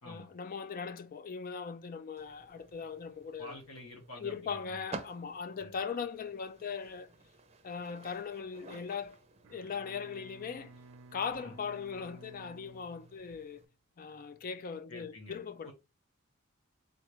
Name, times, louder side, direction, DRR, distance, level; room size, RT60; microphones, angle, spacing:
voice 1, 0.0-3.5 4.2-7.1 7.6-9.2 9.5-10.7 11.1-13.6 14.0-15.7, left 6 dB, 40° left, 0.4 m, -39 dB
sound 1, 2.2-13.6, right 3 dB, 30° right, 0.6 m, -53 dB
voice 2, 3.4-4.9 5.6-5.7 11.4-11.5 14.9-15.4 15.6-15.7, left 1 dB, 70° left, 1.2 m, -48 dB
Bowed string instrument, 9.4-13.7, right 3 dB, 75° right, 0.4 m, -55 dB
3.9 x 3.2 x 3.2 m
head